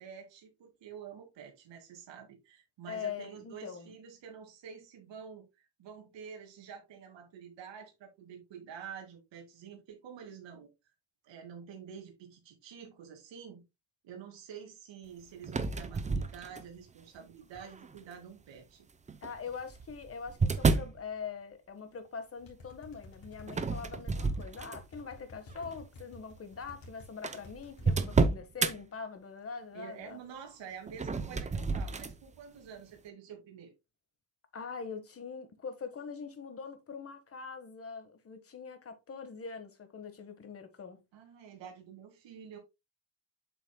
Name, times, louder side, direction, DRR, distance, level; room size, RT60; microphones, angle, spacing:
voice 1, 0.0-10.7 11.2-13.6 14.0-18.8 29.7-33.7 41.1-42.6, right 7 dB, 65° right, 2.3 m, -48 dB
voice 2, 2.9-3.9 19.2-30.2 34.5-41.0, left 5 dB, 30° left, 1.4 m, -43 dB
sound 1, 15.4-16.9 17.6-18.0 19.1-21.0 23.5-25.0 25.5-25.8 26.5-26.6 26.8-26.9 27.2-28.7 30.9-32.2, right 4 dB, 15° right, 0.5 m, -30 dB
sound 2, 22.4-27.1 27.4-28.2, left 2 dB, 50° left, 3.3 m, -52 dB
8.0 x 6.2 x 2.2 m
cardioid pair, 150°, 46 cm